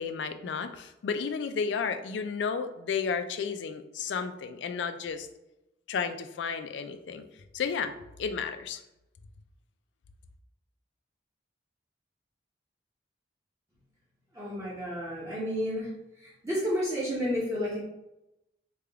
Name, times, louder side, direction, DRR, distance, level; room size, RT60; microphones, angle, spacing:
voice 1, 0.0-5.3 5.9-7.3 7.5-7.9 8.2-8.8, left 6 dB, 80° left, 9 dB, 0.3 m, -32 dB
voice 2, 14.3-15.9 16.2-17.8, equal, 15° right, -7 dB, 0.7 m, -31 dB
3.4 x 2.3 x 3.4 m, 0.91 s
head